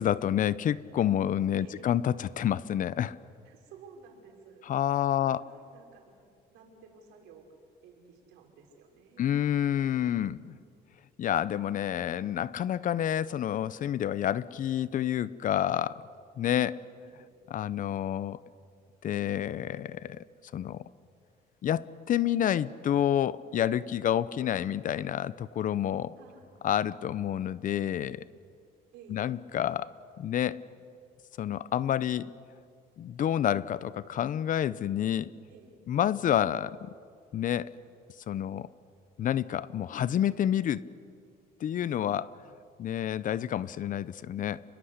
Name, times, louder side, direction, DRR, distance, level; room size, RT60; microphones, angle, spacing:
voice 1, 0.0-3.2 4.7-5.4 9.2-10.5 11.2-16.0 16.4-16.8 17.5-18.4 19.0-20.2 20.5-20.8 21.6-26.1 26.6-28.2 29.1-29.9 30.2-30.6 31.4-32.3 33.0-35.3 35.9-36.9 37.3-37.7 38.3-38.7 39.2-40.8 41.6-42.3 42.8-44.6, left 10 dB, 50° left, 18 dB, 0.8 m, -29 dB
voice 2, 1.6-1.9 3.4-4.8 5.1-6.1 6.5-7.5 7.8-9.3 17.2-17.4 26.1-26.5 28.9-29.3 35.5-35.8, right 5 dB, 90° right, 2 dB, 5.4 m, -54 dB
29.5 x 22.0 x 8.1 m, 2.3 s
cardioid pair, 110°, 17 cm